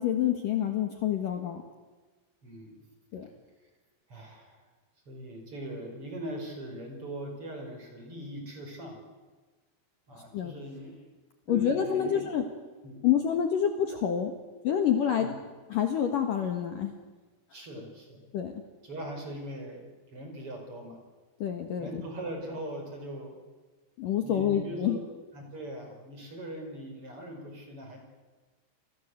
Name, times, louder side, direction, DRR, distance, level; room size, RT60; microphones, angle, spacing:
voice 1, 0.0-1.6 3.1-3.3 10.3-10.5 11.5-12.4 13.0-14.3 14.6-15.3 15.7-16.9 18.3-18.5 21.4-21.9 24.0-25.0, left 9 dB, 65° left, 5 dB, 2.2 m, -27 dB
voice 2, 2.4-2.9 4.1-4.6 5.1-9.0 10.1-10.9 11.5-12.3 12.8-13.0 15.2-15.4 17.5-18.2 18.8-19.8 20.1-21.0 21.8-23.3 24.2-25.0 25.3-28.0, right 1 dB, 25° right, 3 dB, 5.7 m, -40 dB
29.5 x 21.5 x 8.0 m, 1.3 s
omnidirectional pair, 6.0 m